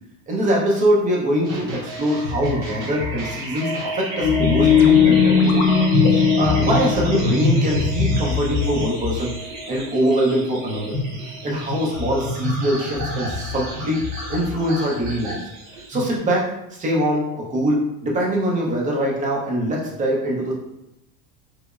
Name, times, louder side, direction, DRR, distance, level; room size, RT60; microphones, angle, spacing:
voice 1, 0.3-5.7 6.0-9.3 9.7-11.0 11.4-14.0 14.3-15.5 15.9-20.5, right 1 dB, 20° right, -3 dB, 0.5 m, -23 dB
sound 1, 1.4-16.2, left 1 dB, 40° right, 0.8 m, -27 dB
sound 2, 4.2-8.5, left 6 dB, 65° left, 0.5 m, -18 dB
3.3 x 3.0 x 2.3 m, 0.87 s
cardioid pair, 160°, 40 cm